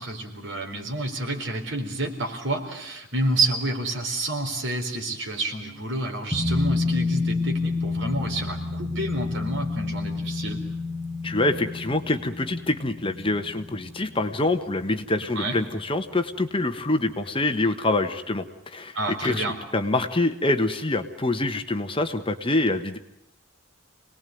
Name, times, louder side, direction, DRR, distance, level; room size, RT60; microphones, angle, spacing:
voice 1, 0.0-10.6 15.3-15.6 18.9-19.5, right 2 dB, 65° right, 3 dB, 4.2 m, -29 dB
sound 1, 6.3-15.4 15.7-15.8, left 3 dB, ahead, 1.7 m, -29 dB
voice 2, 11.2-19.4 19.7-23.0, left 2 dB, 25° left, 8 dB, 1.3 m, -25 dB
27.0 x 19.5 x 9.4 m, 0.83 s
head